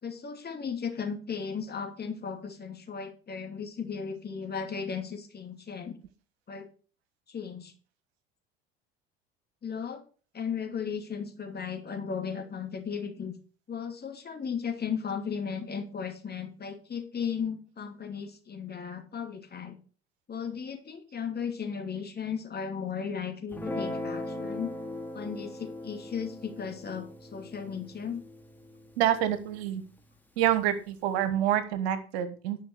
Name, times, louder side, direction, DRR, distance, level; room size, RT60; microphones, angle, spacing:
voice 1, 0.0-6.0 6.5-6.7 7.3-7.7 9.6-10.0 10.3-13.3 13.7-19.8 20.3-24.7 25.1-28.2, left 6 dB, 30° left, 5 dB, 2.8 m, -36 dB
Guitar, 23.5-30.1, left 1 dB, 5° left, 2.6 m, -39 dB
voice 2, 29.0-29.8 30.4-32.6, right 11 dB, 75° right, 12 dB, 1.4 m, -27 dB
10.5 x 5.8 x 6.5 m, 0.38 s
hypercardioid pair, 70°, 32 cm